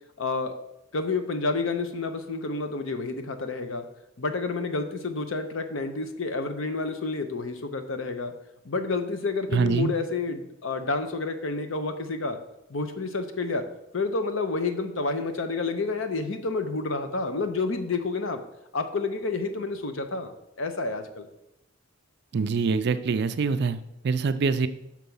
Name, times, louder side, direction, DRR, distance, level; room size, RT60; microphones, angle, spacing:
voice 1, 0.2-0.5 0.9-3.8 4.2-8.3 8.6-12.4 12.7-13.6 13.9-18.4 18.7-20.3 20.6-21.3, left 3 dB, 65° left, 8 dB, 0.7 m, -29 dB
voice 2, 9.5-9.9 22.3-24.7, right 5 dB, 55° right, 12 dB, 0.4 m, -25 dB
6.1 x 4.5 x 5.4 m, 0.84 s
head